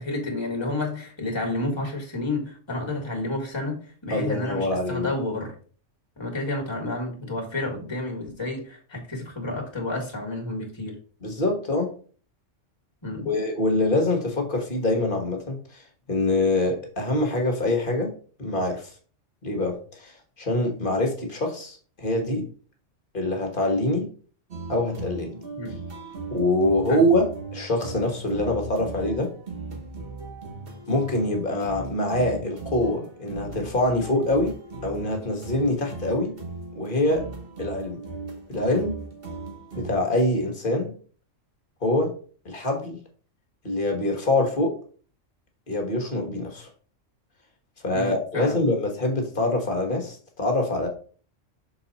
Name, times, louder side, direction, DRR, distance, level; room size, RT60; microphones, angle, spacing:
voice 1, 0.0-5.6 6.2-11.0 13.0-13.3 25.6-25.8 26.9-27.0 47.9-48.6, left 2 dB, 20° left, 0 dB, 1.8 m, -30 dB
voice 2, 4.1-5.1 11.2-11.9 13.2-15.8 16.1-18.1 18.4-18.9 19.4-22.5 23.1-24.1 24.7-25.4 26.3-27.2 27.5-29.3 30.9-34.5 34.8-36.3 36.7-37.3 37.6-38.0 38.5-38.9 39.7-40.9 41.8-42.1 42.4-43.0 43.6-44.8 45.7-46.7 47.8-50.9, left 1 dB, 45° left, 3 dB, 1.5 m, -24 dB
sound 1, 24.5-40.2, right 3 dB, 50° right, 1.5 m, -38 dB
6.5 x 4.1 x 4.1 m, 0.41 s
omnidirectional pair, 1.3 m